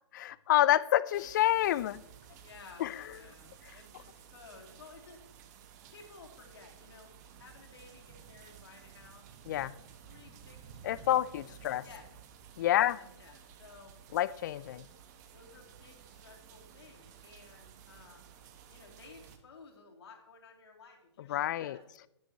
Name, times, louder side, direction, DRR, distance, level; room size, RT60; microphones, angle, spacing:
voice 1, 0.1-2.0 2.8-2.9 9.5-9.7 10.8-11.8 12.6-13.0 14.1-14.8 21.3-21.8, left 13 dB, 40° left, 18 dB, 0.4 m, -28 dB
sound 1, 1.1-19.4, right 8 dB, 35° right, 1.0 m, -54 dB
voice 2, 2.4-5.2 5.9-7.1 7.4-9.3 9.6-9.8 10.0-12.1 12.7-13.9 14.6-14.9 15.3-18.4 18.7-21.8, left 4 dB, 60° left, 0 dB, 2.6 m, -55 dB
12.5 x 10.0 x 2.9 m, 0.80 s
hypercardioid pair, 130°, 15 cm